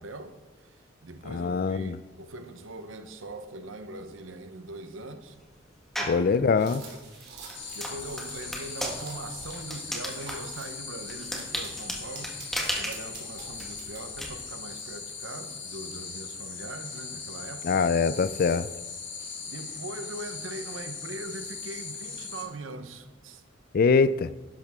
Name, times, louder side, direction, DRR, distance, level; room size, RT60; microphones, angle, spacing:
voice 1, 0.0-5.4 6.0-6.3 6.7-17.7 19.5-23.4, right 2 dB, 80° right, 1.0 m, -42 dB
voice 2, 1.3-2.0 6.1-6.8 17.6-18.7 23.7-24.3, left 5 dB, 50° left, 0.4 m, -23 dB
sound 1, 5.9-6.3 6.8-14.3, equal, ahead, 1.6 m, -35 dB
sound 2, 6.6-10.8 11.4-14.3, right 4 dB, 55° right, 2.9 m, -47 dB
sound 3, 7.5-22.4, left 5 dB, 65° left, 2.4 m, -40 dB
12.0 x 10.5 x 3.6 m
head